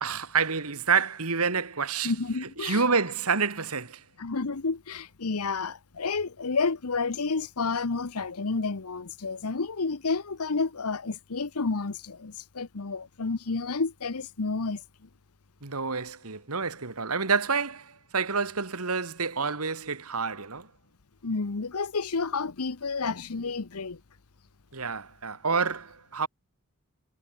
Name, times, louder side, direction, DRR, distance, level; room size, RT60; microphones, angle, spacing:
voice 1, 0.0-2.1 2.6-4.0 15.6-20.7 24.7-26.3, right 5 dB, 80° right, 2.3 m, -28 dB
voice 2, 2.0-2.8 4.2-14.8 21.2-24.0, left 4 dB, 85° left, 1.0 m, -30 dB
head